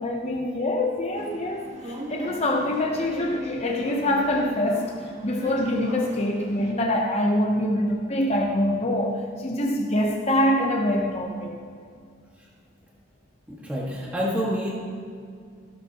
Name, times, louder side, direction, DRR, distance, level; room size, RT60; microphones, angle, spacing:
voice 1, 0.0-4.9 5.2-11.6, left 1 dB, 30° left, 1 dB, 0.8 m, -25 dB
sound 1, 1.1-6.7, right 2 dB, 35° right, 1.3 m, -39 dB
voice 2, 13.5-14.8, equal, 5° right, -6 dB, 1.7 m, -28 dB
15.5 x 13.0 x 2.9 m, 2.2 s
head